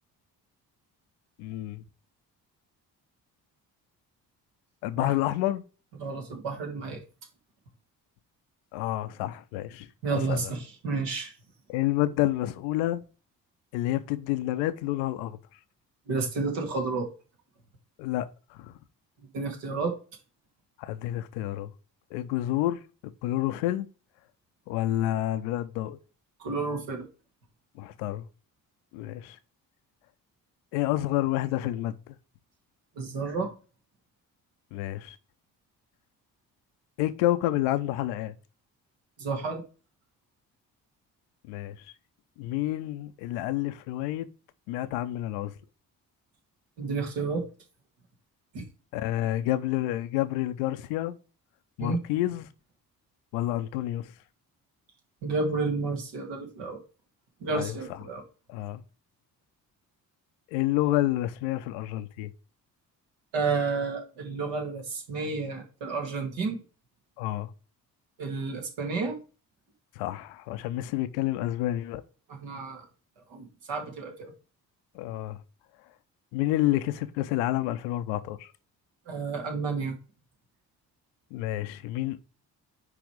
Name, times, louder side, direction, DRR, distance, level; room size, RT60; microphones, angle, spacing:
voice 1, 1.4-1.8 4.8-5.6 8.7-9.9 10.1-10.5 11.7-13.0 13.7-15.4 18.0-18.3 18.5-18.8 20.8-21.7 22.1-22.8 23.2-23.9 24.7-26.0 27.8-28.3 28.9-29.4 30.7-32.1 34.7-35.2 37.0-38.3 41.5-41.8 42.4-44.3 44.7-45.5 48.9-51.1 51.8-52.5 53.3-54.1 57.5-57.7 58.5-58.8 60.5-62.3 67.2-67.5 70.0-72.0 74.9-75.4 76.3-78.5 81.3-82.2, left 15 dB, 65° left, 0.8 m, -29 dB
voice 2, 6.0-7.0 10.0-11.3 16.1-17.1 19.3-20.0 26.4-27.1 33.0-33.5 39.2-39.6 46.8-47.5 48.5-48.6 51.8-52.0 55.2-56.8 57.4-58.2 63.3-66.6 68.2-69.2 72.3-72.9 73.3-74.3 79.1-79.9, right 4 dB, 60° right, 2.4 m, -31 dB
9.7 x 3.5 x 4.7 m
figure-of-eight pair, 40°, 50 cm